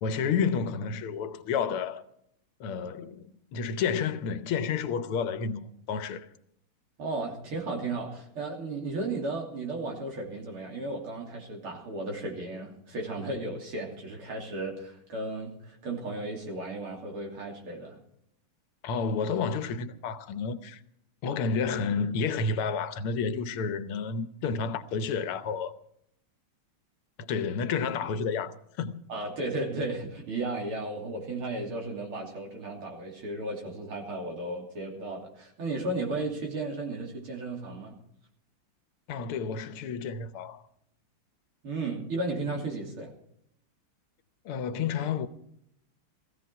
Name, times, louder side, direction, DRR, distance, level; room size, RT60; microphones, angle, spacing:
voice 1, 0.0-2.0 2.6-6.3 18.8-20.8 21.2-25.7 27.2-29.0 39.1-40.6 44.5-45.3, left 5 dB, 80° left, 1.8 m, -30 dB
voice 2, 7.0-18.0 29.1-38.0 41.6-43.1, right 2 dB, 75° right, 3.9 m, -34 dB
16.5 x 15.5 x 4.7 m
omnidirectional pair, 2.4 m